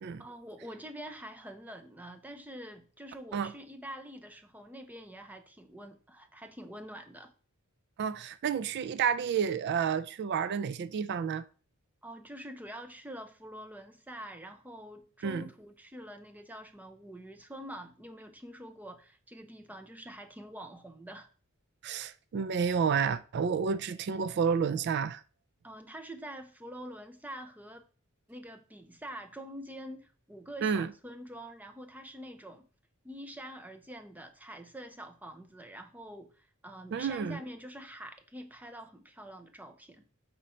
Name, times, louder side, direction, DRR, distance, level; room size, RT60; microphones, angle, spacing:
voice 1, 0.2-7.3 12.0-21.3 25.6-27.9 28.3-32.7 33.0-40.1, equal, 10° right, 0.6 m, -46 dB
voice 2, 8.0-11.4 15.2-15.5 21.8-25.2 30.6-30.9 36.9-37.4, right 6 dB, 50° right, 0.3 m, -30 dB
5.1 x 4.4 x 4.2 m
head